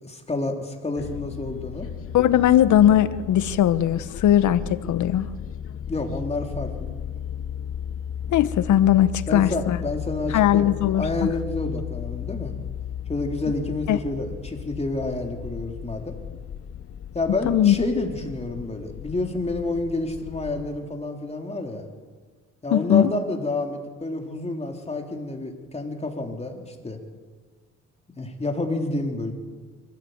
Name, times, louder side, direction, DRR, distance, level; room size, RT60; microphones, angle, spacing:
voice 1, 0.0-1.9 5.9-7.0 9.3-12.6 13.1-16.2 17.1-21.9 22.6-27.0 28.2-29.3, left 2 dB, 20° left, 3 dB, 3.5 m, -29 dB
sound 1, 1.0-20.8, left 9 dB, 50° left, 0.8 m, -35 dB
voice 2, 2.1-5.3 8.3-9.8 10.3-11.3 13.9-14.0 17.4-17.8 22.7-23.1, left 11 dB, 75° left, 14 dB, 1.1 m, -19 dB
24.5 x 15.0 x 8.1 m, 1.5 s
cardioid pair, 90°, 30 cm